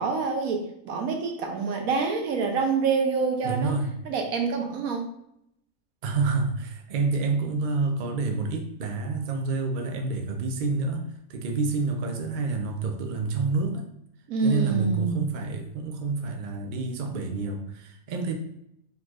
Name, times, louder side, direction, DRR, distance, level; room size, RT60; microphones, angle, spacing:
voice 1, 0.0-3.8 4.0-5.1 14.3-15.2, right 5 dB, 75° right, 3 dB, 1.2 m, -26 dB
voice 2, 3.4-3.9 6.0-13.8 14.4-18.3, right 3 dB, 55° right, 4 dB, 0.5 m, -28 dB
4.5 x 4.0 x 2.4 m, 0.78 s
omnidirectional pair, 1.5 m